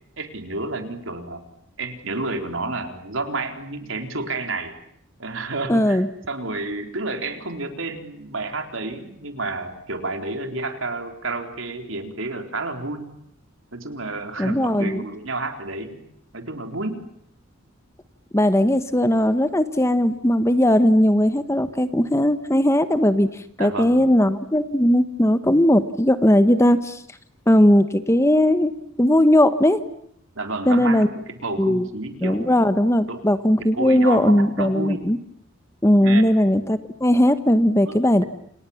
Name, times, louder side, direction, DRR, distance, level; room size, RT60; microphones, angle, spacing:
voice 1, 0.2-1.4 1.8-4.7 5.2-13.1 13.7-16.0 16.3-17.0 23.6-24.1 30.4-32.6 33.1-33.2 33.7-35.0 36.0-36.4 37.9-38.0, right 2 dB, 65° right, 6 dB, 3.9 m, -30 dB
voice 2, 5.7-6.1 14.4-15.0 18.3-23.3 23.6-27.0 27.5-28.7 29.0-29.8 30.7-31.1 31.6-31.9 32.2-35.2 35.8-38.2, left 1 dB, 15° left, 11 dB, 1.1 m, -18 dB
29.0 x 28.5 x 7.2 m, 0.70 s
head